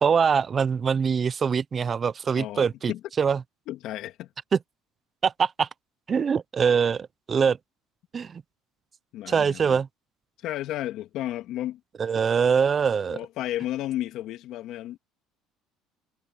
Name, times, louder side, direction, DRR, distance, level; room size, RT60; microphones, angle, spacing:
voice 1, 0.0-2.9 3.2-3.4 4.5-4.6 5.2-5.7 6.1-7.6 8.1-8.4 9.3-9.9 12.0-13.2, right 6 dB, 35° right, 0.5 m, -23 dB
voice 2, 2.4-3.0 3.7-4.3 9.1-9.8 10.4-11.8 13.1-15.0, left 14 dB, 65° left, 2.4 m, -33 dB
supercardioid pair, 95°, 0 cm